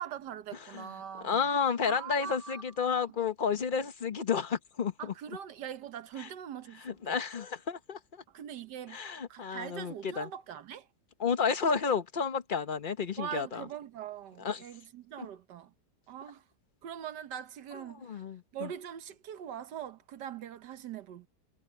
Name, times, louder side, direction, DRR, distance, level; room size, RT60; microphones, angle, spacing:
voice 1, 0.0-1.5 1.8-2.6 5.0-7.2 8.3-9.0 9.3-10.9 13.2-15.7 16.1-16.4 16.8-18.2 18.5-21.3, right 9 dB, 85° right, 1.6 m, -42 dB
voice 2, 1.2-5.1 6.2-6.3 6.8-8.2 8.9-10.3 11.2-13.6 14.4-14.6 15.2-15.3 18.0-18.7, left 6 dB, 35° left, 1.0 m, -31 dB
omnidirectional pair, 1.8 m